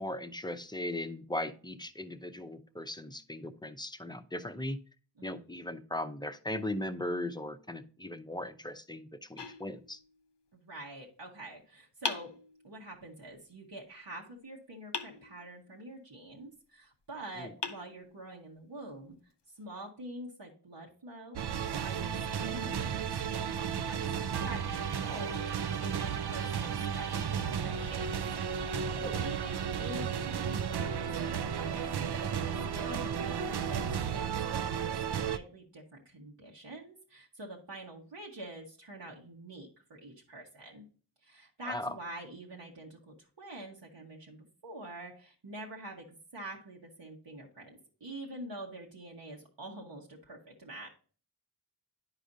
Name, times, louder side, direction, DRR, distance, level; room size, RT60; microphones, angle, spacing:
voice 1, 0.0-4.8 5.2-10.0 17.4-17.5 28.9-29.2 41.7-41.9, left 1 dB, 10° left, 10 dB, 0.6 m, -38 dB
sound 1, 9.4-10.4 12.0-13.0 14.9-15.9 17.0-17.1 17.6-18.6, left 5 dB, 80° left, 0.7 m, -41 dB
voice 2, 10.5-12.3 12.6-21.4 21.8-28.1 28.7-31.8 32.4-40.8 41.2-50.9, right 1 dB, 85° right, -2 dB, 1.3 m, -46 dB
sound 2, 21.4-35.4, right 7 dB, 70° right, 0.5 m, -33 dB
10.5 x 4.9 x 2.6 m, 0.39 s
wide cardioid pair, 50°, 42 cm